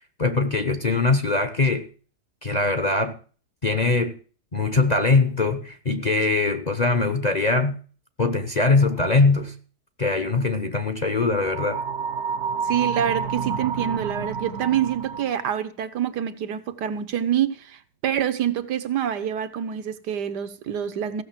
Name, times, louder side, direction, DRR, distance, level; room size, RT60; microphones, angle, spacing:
voice 1, 0.2-1.9 2.4-3.2 3.6-4.2 4.5-7.8 8.2-9.5 10.0-11.8, left 3 dB, 35° left, 0.8 m, -22 dB
sound 1, 11.5-15.4, right 5 dB, 55° right, 1.0 m, -29 dB
voice 2, 12.6-21.2, right 9 dB, 80° right, 1.6 m, -26 dB
15.5 x 6.7 x 7.4 m
omnidirectional pair, 1.8 m